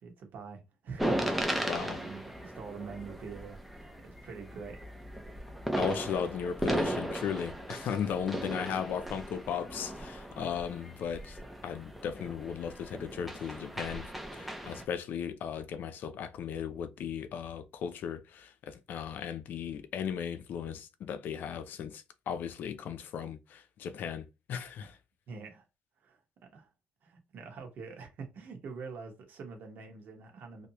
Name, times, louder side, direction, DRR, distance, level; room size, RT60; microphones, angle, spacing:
voice 1, 0.0-4.8 8.3-8.5 25.3-25.6 26.0-26.2 26.5-26.7 27.0-30.7, right 5 dB, 55° right, 1.2 m, -45 dB
sound 1, 1.0-14.8, right 1 dB, ahead, 0.5 m, -37 dB
voice 2, 1.7-2.0 5.8-11.4 11.6-24.9, left 7 dB, 60° left, 0.5 m, -36 dB
3.2 x 2.7 x 2.9 m
cardioid pair, 175°, 4 cm